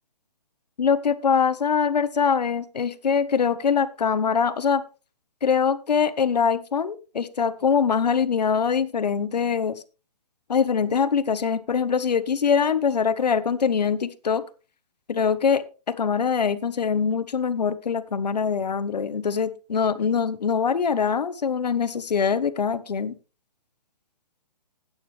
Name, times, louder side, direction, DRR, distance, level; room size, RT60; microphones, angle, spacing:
voice 1, 0.8-4.8 5.4-9.8 10.5-14.4 15.1-23.2, left 6 dB, 85° left, 13 dB, 1.3 m, -23 dB
14.0 x 9.2 x 3.4 m, 0.33 s
hypercardioid pair, 175°, 20 cm